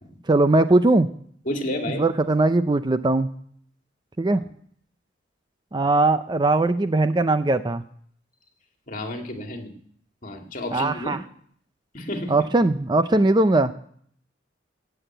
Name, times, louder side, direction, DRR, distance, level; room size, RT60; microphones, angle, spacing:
voice 1, 0.3-1.1 2.0-3.3 4.2-4.4 5.7-7.8 10.7-11.2 12.3-13.7, right 2 dB, 25° right, 11 dB, 0.5 m, -20 dB
voice 2, 1.5-2.0 8.9-9.7 10.2-11.2 11.9-12.3, left 1 dB, 45° left, 3 dB, 2.3 m, -30 dB
15.0 x 8.0 x 8.9 m, 0.63 s
head